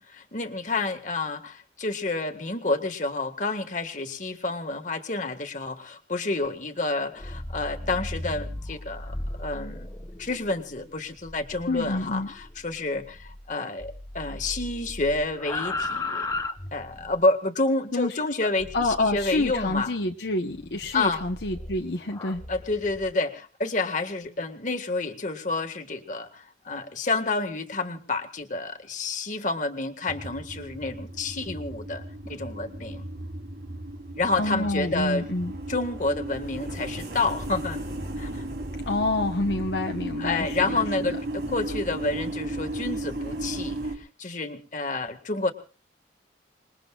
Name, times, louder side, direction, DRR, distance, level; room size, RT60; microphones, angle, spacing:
voice 1, 0.0-9.9 10.2-16.2 16.7-19.9 20.9-21.2 22.5-33.0 34.2-35.2 35.7-37.8 38.2-38.4 40.2-45.5, left 3 dB, 40° left, 6 dB, 1.8 m, -29 dB
sound 1, 7.1-13.5 13.8-17.2 18.6-19.8 20.5-23.1, left 2 dB, 20° left, 0.8 m, -37 dB
voice 2, 11.7-12.3 17.9-18.1 18.7-22.4 34.4-35.6 38.9-41.2, left 2 dB, 65° left, 3 dB, 1.0 m, -28 dB
sound 2, 30.1-44.0, right 1 dB, 65° right, 3.4 m, -35 dB
26.5 x 21.5 x 2.4 m, 0.39 s
head